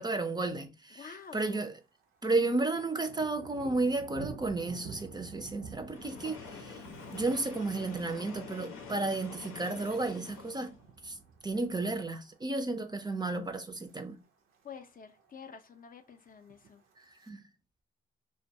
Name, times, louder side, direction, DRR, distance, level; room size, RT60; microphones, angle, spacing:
voice 1, 0.0-1.7 2.2-6.8 7.1-10.7 11.0-11.2 11.4-14.2 17.3-17.4, right 2 dB, 20° right, 0.4 m, -33 dB
voice 2, 0.9-1.7 14.6-16.8, left 6 dB, 45° left, 0.4 m, -48 dB
Thunder, 1.2-1.7 2.0-12.4 12.8-13.1 13.6-14.0 14.3-14.4 14.5-14.6 15.0-15.6 16.4-17.3, right 5 dB, 85° right, 0.5 m, -51 dB
Train, 5.9-10.9, left 5 dB, 90° left, 0.6 m, -46 dB
2.2 x 2.1 x 2.6 m
cardioid pair, 60°, 21 cm